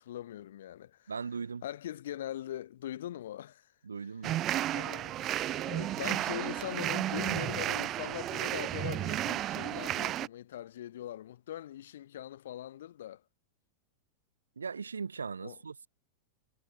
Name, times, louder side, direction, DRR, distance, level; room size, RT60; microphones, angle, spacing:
voice 1, 0.0-1.1 1.6-3.7 4.7-13.2 15.4-15.6, left 12 dB, 60° left, 1.0 m, -41 dB
voice 2, 1.1-1.6 3.8-4.4 14.6-15.9, right 5 dB, 75° right, 0.7 m, -39 dB
sound 1, 4.2-10.3, right 13 dB, 35° right, 0.4 m, -33 dB
figure-of-eight pair, 90°, 0 cm